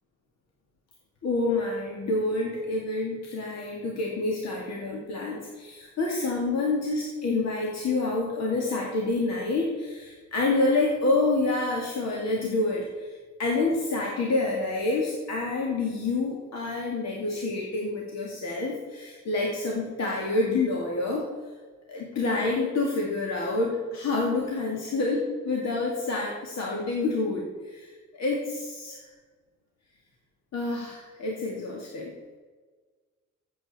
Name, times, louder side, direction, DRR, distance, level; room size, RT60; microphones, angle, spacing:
voice 1, 1.2-21.2 21.9-29.1 30.5-32.1, left 2 dB, 60° left, -2 dB, 2.2 m, -28 dB
14.0 x 7.8 x 4.3 m, 1.4 s
cardioid pair, 90°, 30 cm